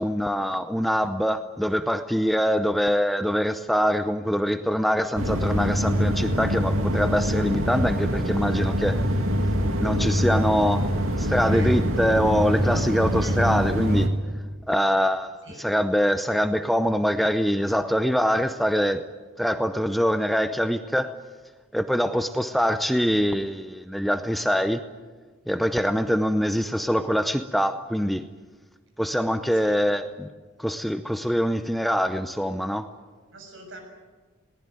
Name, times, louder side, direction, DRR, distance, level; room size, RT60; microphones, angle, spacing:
voice 1, 0.0-9.0 9.8-10.8 11.2-14.1 14.7-15.3 15.6-19.0 19.4-21.1 21.7-24.8 25.5-28.2 29.0-30.3 30.6-32.9, equal, ahead, 9 dB, 0.6 m, -24 dB
sound 1, 5.2-14.1, equal, 80° right, 2.5 m, -24 dB
voice 2, 33.3-33.8, right 2 dB, 65° right, 4 dB, 6.6 m, -42 dB
21.5 x 19.0 x 9.1 m, 1.4 s
head